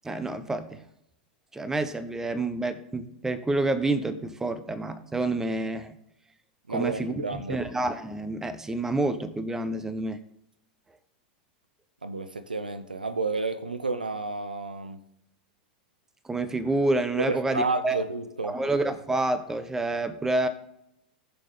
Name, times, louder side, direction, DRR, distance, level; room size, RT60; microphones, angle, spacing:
voice 1, 0.0-0.8 1.5-6.0 6.7-7.1 7.5-10.2 16.2-18.0 18.4-20.5, right 2 dB, 10° right, 1.0 m, -28 dB
voice 2, 6.7-7.6 12.0-15.0 17.2-18.6, right 3 dB, 85° right, 0.8 m, -31 dB
19.0 x 6.8 x 3.8 m
figure-of-eight pair, 90°, 5 cm